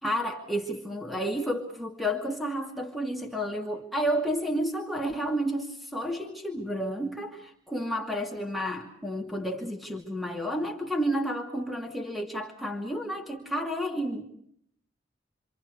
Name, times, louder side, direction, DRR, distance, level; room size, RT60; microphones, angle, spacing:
voice 1, 0.0-14.2, equal, ahead, 1 dB, 2.4 m, -31 dB
28.5 x 26.5 x 4.9 m, 0.67 s
head